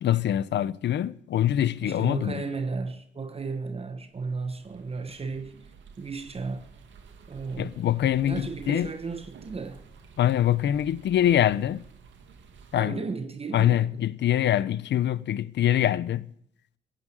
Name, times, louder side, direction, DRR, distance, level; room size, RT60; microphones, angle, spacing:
voice 1, 0.0-2.4 7.6-8.9 10.2-11.8 12.7-13.0 13.5-16.3, left 11 dB, 65° left, 0.8 m, -24 dB
voice 2, 1.8-5.6 6.0-6.7 7.3-8.0 8.3-9.8 12.7-14.0, right 4 dB, 30° right, 1.2 m, -34 dB
sound 1, 4.1-12.8, right 5 dB, 70° right, 2.3 m, -51 dB
15.5 x 9.2 x 9.2 m
cardioid pair, 90°, 20 cm